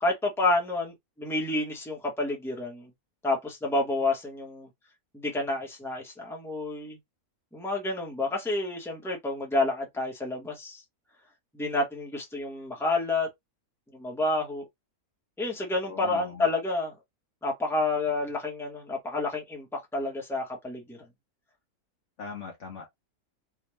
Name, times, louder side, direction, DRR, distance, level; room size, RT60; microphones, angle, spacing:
voice 1, 0.0-2.9 3.2-4.7 5.1-7.0 7.5-10.8 11.5-13.3 13.9-14.7 15.4-16.9 17.4-21.0, left 2 dB, ahead, 1.0 m, -29 dB
voice 2, 15.8-16.5 22.2-22.9, left 5 dB, 55° left, 1.0 m, -40 dB
3.4 x 2.7 x 3.1 m
omnidirectional pair, 1.6 m